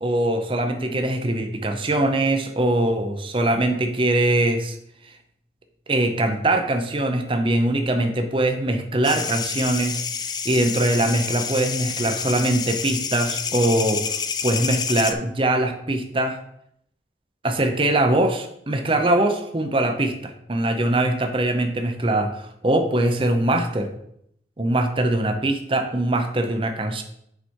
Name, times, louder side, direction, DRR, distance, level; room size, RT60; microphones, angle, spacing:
voice 1, 0.0-4.8 5.9-14.1 14.4-16.4 17.4-23.9 24.6-27.0, right 1 dB, 30° right, 6 dB, 0.7 m, -22 dB
sound 1, 9.0-15.1, left 6 dB, 25° left, 0.4 m, -28 dB
7.1 x 5.0 x 4.5 m, 0.72 s
head